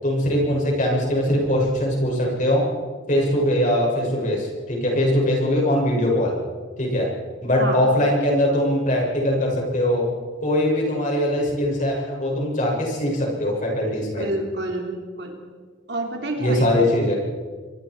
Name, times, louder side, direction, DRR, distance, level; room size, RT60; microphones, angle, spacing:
voice 1, 0.0-2.6 3.1-6.3 6.8-7.1 7.4-10.1 10.4-14.2 16.4-17.1, left 1 dB, 40° left, -1 dB, 7.2 m, -21 dB
voice 2, 14.2-15.4 15.9-16.7, right 1 dB, 60° right, 2 dB, 3.3 m, -28 dB
25.5 x 21.0 x 4.8 m, 1.5 s
head